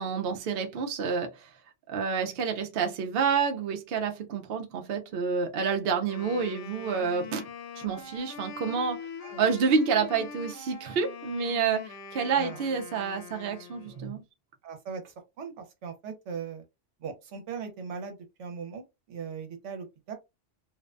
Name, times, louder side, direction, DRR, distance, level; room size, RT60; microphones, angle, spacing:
voice 1, 0.0-1.5 1.9-7.4 7.8-9.0 9.4-14.2, right 5 dB, 65° right, 0.7 m, -28 dB
Wind instrument woodwind instrument, 5.9-14.1, left 6 dB, 85° left, 0.9 m, -43 dB
voice 2, 14.6-15.0 15.4-16.6 17.0-20.1, right 6 dB, 80° right, 1.0 m, -39 dB
2.5 x 2.1 x 2.4 m
omnidirectional pair, 1.2 m